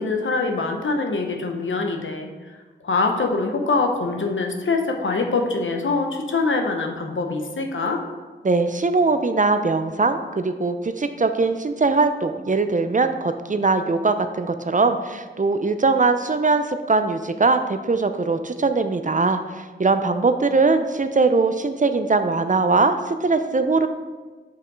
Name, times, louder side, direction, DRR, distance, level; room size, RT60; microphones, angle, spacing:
voice 1, 0.0-2.3 2.8-8.0, left 3 dB, 85° left, 3 dB, 0.8 m, -24 dB
voice 2, 8.4-23.9, right 3 dB, 40° right, 9 dB, 0.5 m, -21 dB
5.6 x 5.0 x 4.6 m, 1.3 s
cardioid pair, 40°, 20 cm